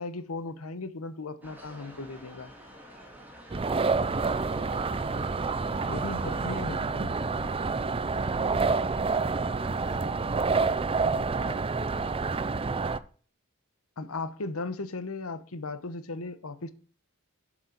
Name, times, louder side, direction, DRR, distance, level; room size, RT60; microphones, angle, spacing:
voice 1, 0.0-2.5 5.9-7.1 14.0-16.7, left 3 dB, 80° left, 1.1 m, -36 dB
sound 1, 1.4-6.5, equal, 10° right, 2.4 m, -49 dB
sound 2, 3.5-13.0, right 4 dB, 25° right, 0.5 m, -28 dB
voice 2, 3.9-5.4 5.9-10.1 11.0-12.9, left 1 dB, 15° left, 1.3 m, -49 dB
8.0 x 6.1 x 6.0 m
head